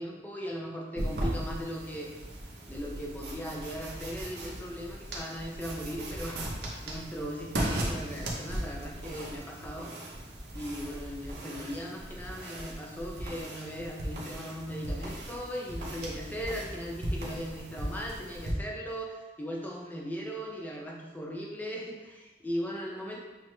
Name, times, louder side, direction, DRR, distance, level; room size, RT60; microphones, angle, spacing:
voice 1, 0.0-2.1 2.7-9.9 10.5-23.2, equal, 10° left, -2 dB, 0.5 m, -38 dB
sound 1, 1.0-18.5, right 1 dB, 70° right, 0.8 m, -37 dB
6.0 x 2.1 x 3.1 m, 1.2 s
head